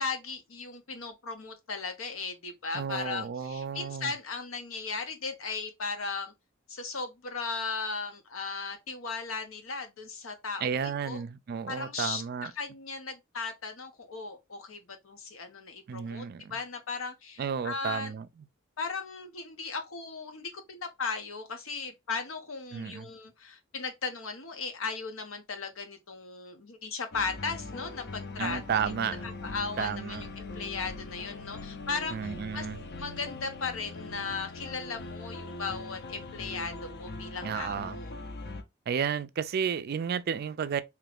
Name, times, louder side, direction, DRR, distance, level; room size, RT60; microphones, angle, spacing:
voice 1, 0.0-6.3 6.7-10.8 11.0-11.2 11.7-12.2 12.5-18.1 18.8-28.6 29.0-32.7 33.0-38.2, left 4 dB, 85° left, 0.8 m, -37 dB
voice 2, 2.7-4.1 10.6-12.5 15.9-16.5 17.4-18.3 22.7-23.1 28.4-29.3 29.8-30.2 32.1-32.8 37.4-38.0 38.9-40.8, right 7 dB, 50° right, 0.3 m, -32 dB
sound 1, 27.1-38.6, left 3 dB, 55° left, 0.6 m, -41 dB
3.0 x 2.4 x 3.4 m
head